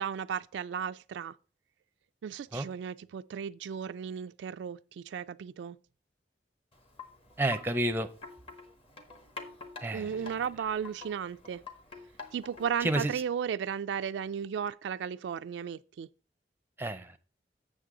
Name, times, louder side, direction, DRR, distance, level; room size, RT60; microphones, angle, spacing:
voice 1, 0.0-1.3 2.2-5.8 9.9-11.6 12.3-16.1, right 7 dB, 90° right, 0.3 m, -35 dB
Wind chime, 6.7-12.9, left 4 dB, 35° left, 1.1 m, -48 dB
voice 2, 7.4-8.1 9.8-10.1 12.8-13.1 16.8-17.2, right 1 dB, 15° right, 0.5 m, -30 dB
8.2 x 6.5 x 3.7 m
head